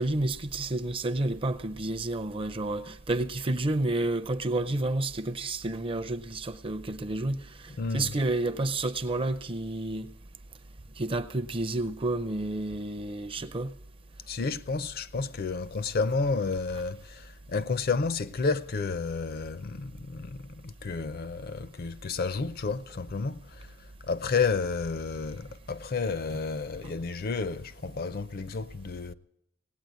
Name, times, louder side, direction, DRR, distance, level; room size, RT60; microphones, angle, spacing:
voice 1, 0.0-7.4 7.9-10.1 11.0-13.7, right 2 dB, 25° right, 0.5 m, -30 dB
voice 2, 7.8-8.1 14.3-29.1, left 4 dB, 45° left, 0.5 m, -31 dB
18.0 x 8.7 x 9.2 m
head